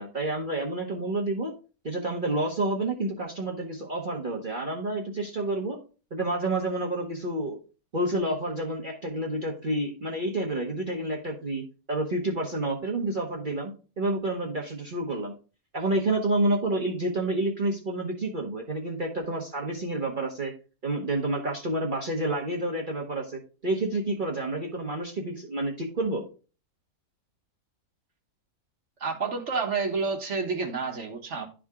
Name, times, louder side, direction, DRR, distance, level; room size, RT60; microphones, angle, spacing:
voice 1, 0.0-1.5 1.8-5.8 6.1-7.6 7.9-15.3 15.7-20.5 20.8-26.2, right 2 dB, 35° right, 1.1 m, -29 dB
voice 2, 29.0-31.5, right 4 dB, 55° right, 1.4 m, -29 dB
11.0 x 3.7 x 3.6 m
omnidirectional pair, 1.5 m